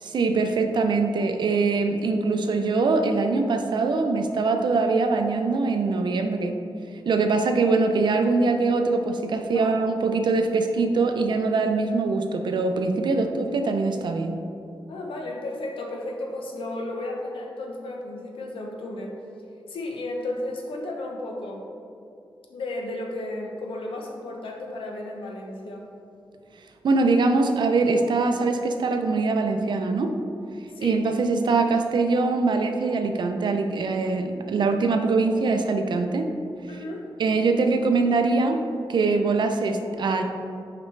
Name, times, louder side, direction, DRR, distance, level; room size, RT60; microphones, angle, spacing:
voice 1, 0.0-6.6 7.1-14.3 26.8-30.1 30.8-36.3 37.2-38.6 38.9-40.2, right 3 dB, 60° right, 6 dB, 0.5 m, -23 dB
voice 2, 14.9-19.1 19.7-21.7 22.5-25.9 30.7-31.0 36.7-37.1, left 2 dB, 85° left, 0 dB, 0.9 m, -33 dB
6.3 x 5.0 x 3.2 m, 2.6 s
wide cardioid pair, 145°, 9 cm